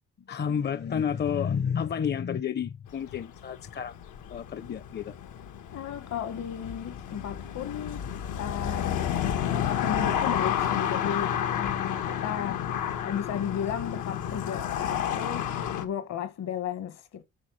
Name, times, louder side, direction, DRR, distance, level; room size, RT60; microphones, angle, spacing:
voice 1, 0.3-3.9 4.3-5.1 12.3-12.5, left 7 dB, 35° left, 0.6 m, -30 dB
sound 1, 2.9-15.8, left 9 dB, 90° left, 1.3 m, -31 dB
voice 2, 5.7-8.1 8.4-9.0 9.8-12.7 13.0-17.2, left 8 dB, 60° left, 1.3 m, -34 dB
8.7 x 4.6 x 6.2 m
cardioid pair, 90°, 30 cm